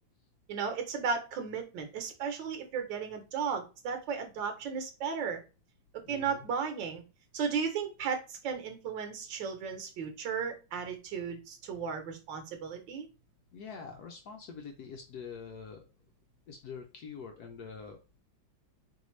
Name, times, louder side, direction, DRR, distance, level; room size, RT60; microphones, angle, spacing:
voice 1, 0.5-5.4 6.1-7.0 7.3-13.1, right 6 dB, 70° right, 6 dB, 1.5 m, -35 dB
voice 2, 6.0-6.4 13.5-15.8 16.5-18.2, left 6 dB, 70° left, 3 dB, 1.0 m, -45 dB
3.9 x 3.3 x 3.1 m, 0.32 s
omnidirectional pair, 2.1 m